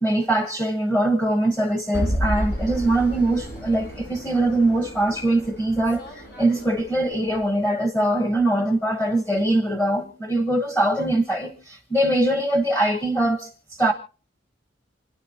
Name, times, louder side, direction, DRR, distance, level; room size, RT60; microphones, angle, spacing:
voice 1, 0.0-13.5 13.8-13.9, right 1 dB, 15° left, 1.0 m, -22 dB
sound 1, 1.9-7.0, equal, 85° left, 7.4 m, -31 dB
Fixed-wing aircraft airplane, 2.3-7.5, equal, 60° left, 5.4 m, -46 dB
28.5 x 10.0 x 2.8 m
head